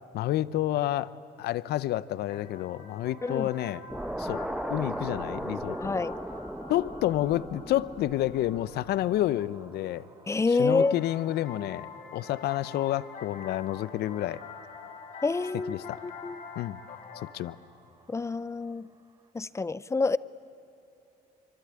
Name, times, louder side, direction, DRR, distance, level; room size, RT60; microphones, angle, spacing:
voice 1, 0.1-3.8 4.2-4.4 4.7-6.0 6.7-10.0 10.6-14.4 15.7-16.0 16.6-16.8 17.3-17.6, left 13 dB, 70° left, 18 dB, 0.7 m, -29 dB
sound 1, 2.0-19.3, right 4 dB, 25° right, 1.2 m, -54 dB
sound 2, 2.3-9.7 10.7-17.3, left 5 dB, 55° left, 3.9 m, -46 dB
sound 3, 3.9-9.2, right 1 dB, 5° right, 0.9 m, -37 dB
voice 2, 5.8-6.1 10.3-10.9 15.2-15.8 16.0-16.4 18.1-18.9 19.3-20.2, left 3 dB, 15° left, 19 dB, 0.6 m, -27 dB
25.0 x 24.5 x 9.7 m, 3.0 s
cardioid pair, 110°, 17 cm